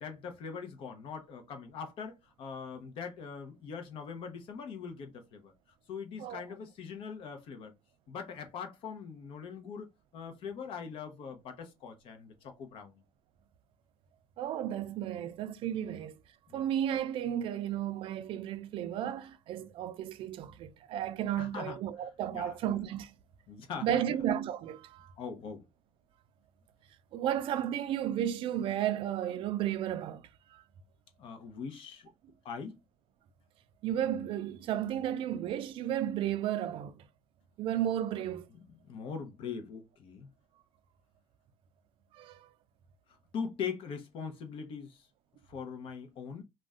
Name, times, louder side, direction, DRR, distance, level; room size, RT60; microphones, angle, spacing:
voice 1, 0.0-5.5 5.9-7.7 8.1-9.9 10.1-13.0 15.9-16.0 16.5-16.6 19.6-19.7 21.4-21.8 22.3-22.6 23.5-24.0 25.2-25.7 31.2-32.1 32.4-32.8 38.5-40.3 43.3-45.1 45.5-46.4, left 6 dB, 55° left, 0.7 m, -41 dB
voice 2, 14.4-16.2 16.5-23.1 23.8-25.1 27.1-30.2 30.5-30.6 33.8-37.0 37.6-38.5 42.1-42.5, right 10 dB, 55° right, 0.3 m, -33 dB
2.5 x 2.2 x 3.4 m
cardioid pair, 150°, 11 cm